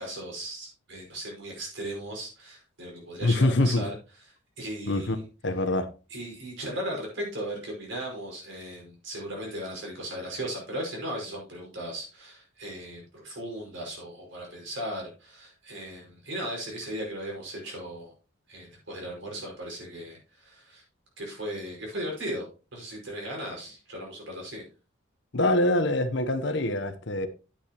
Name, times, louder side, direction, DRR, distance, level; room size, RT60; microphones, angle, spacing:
voice 1, 0.0-4.3 4.6-5.2 6.1-18.1 18.5-20.8 21.2-22.5 22.7-24.7, right 1 dB, 60° right, 5.5 m, -37 dB
voice 2, 3.2-3.8 4.9-5.2 5.4-5.9 25.3-27.3, left 2 dB, 55° left, 0.9 m, -24 dB
10.0 x 8.6 x 2.9 m
head